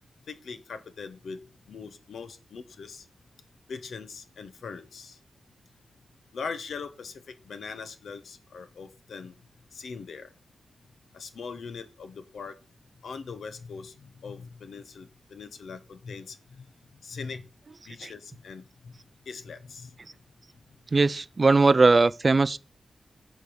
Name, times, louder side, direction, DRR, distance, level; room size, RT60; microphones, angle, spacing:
voice 1, 0.3-1.4 1.7-3.0 3.7-5.2 6.3-9.4 9.7-10.3 11.1-12.6 13.0-16.7 17.0-17.5 17.8-19.0 19.3-19.9, left 5 dB, 80° left, 0.9 m, -41 dB
voice 2, 20.9-22.6, right 3 dB, 40° right, 0.4 m, -19 dB
8.2 x 3.5 x 6.1 m
cardioid pair, 80°, 0 cm